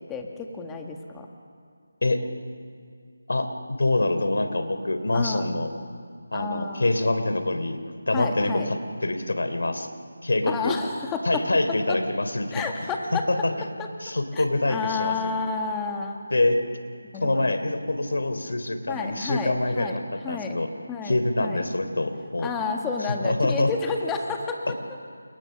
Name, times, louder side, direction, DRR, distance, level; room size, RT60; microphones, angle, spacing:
voice 1, 0.1-1.3 5.1-5.5 6.3-6.9 8.1-8.7 10.5-11.4 11.9-12.0 12.5-13.3 13.8-13.9 14.3-16.3 17.1-17.6 18.9-20.0 20.2-20.6 20.9-21.7 22.4-24.8, left 4 dB, 10° left, 2 dB, 1.7 m, -31 dB
voice 2, 3.3-5.7 6.3-9.9 10.2-10.8 11.2-12.7 13.3-13.5 14.0-15.3 16.3-16.6 17.2-20.7 21.0-22.5 23.2-23.7, left 2 dB, 75° left, 9 dB, 3.2 m, -25 dB
29.0 x 28.5 x 6.7 m, 2.1 s
figure-of-eight pair, 170°, 0 cm